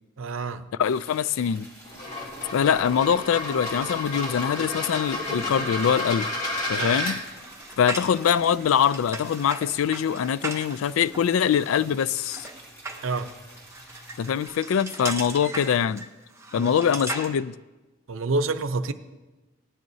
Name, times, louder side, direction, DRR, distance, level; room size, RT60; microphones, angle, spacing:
voice 1, 0.2-0.6 6.8-6.9 13.0-13.3 16.6-16.7 18.1-18.9, right 3 dB, 80° right, 0.6 m, -27 dB
voice 2, 0.8-1.7 2.5-6.3 6.7-7.2 7.8-12.5 14.2-16.1 16.5-17.6, left 8 dB, 85° left, 0.3 m, -23 dB
Liquid, 0.8-14.5, equal, 15° left, 2.4 m, -48 dB
sound 1, 1.8-7.2, left 2 dB, 35° left, 2.2 m, -31 dB
sound 2, 3.8-17.3, right 2 dB, 15° right, 0.9 m, -39 dB
18.0 x 10.5 x 2.7 m
head